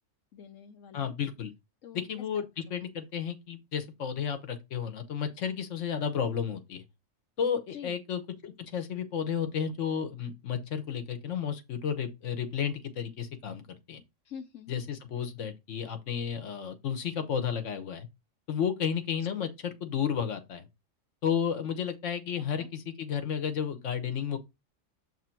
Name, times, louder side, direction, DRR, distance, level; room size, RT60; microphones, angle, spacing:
voice 1, 0.3-1.1 1.8-2.0 2.3-2.7 7.7-8.0 14.2-14.7 19.4-19.5 22.5-22.7, left 8 dB, 90° left, 1.2 m, -46 dB
voice 2, 0.9-1.5 1.9-6.8 7.4-13.6 13.9-14.0 14.7-18.1 18.5-20.7 21.2-24.4, left 7 dB, 70° left, 1.3 m, -32 dB
7.7 x 3.3 x 4.5 m
omnidirectional pair, 1.3 m